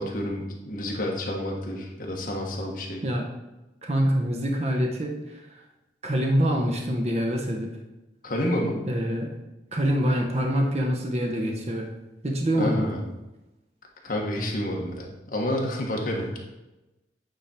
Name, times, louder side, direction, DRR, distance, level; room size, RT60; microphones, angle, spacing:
voice 1, 0.0-3.0 8.2-8.8 12.6-13.0 14.0-16.3, left 1 dB, 50° left, 0 dB, 1.3 m, -29 dB
voice 2, 3.8-5.6 6.0-7.7 8.8-9.3 9.7-11.9 12.2-13.0 16.2-16.3, equal, 35° right, 1 dB, 0.8 m, -25 dB
8.9 x 3.6 x 4.3 m, 1.0 s
head